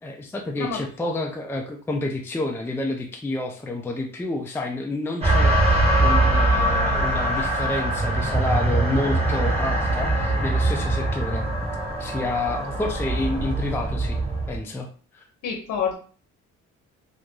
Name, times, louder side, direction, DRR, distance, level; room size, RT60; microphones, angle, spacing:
voice 1, 0.0-11.5 12.0-14.2 14.5-14.9 15.1-15.3, left 2 dB, 10° left, 2 dB, 0.4 m, -29 dB
sound 1, 5.2-14.6, right 1 dB, 20° right, 1.4 m, -22 dB
voice 2, 15.4-15.9, left 6 dB, 75° left, 2 dB, 0.8 m, -27 dB
2.9 x 2.5 x 3.7 m, 0.42 s
cardioid pair, 90°, 30 cm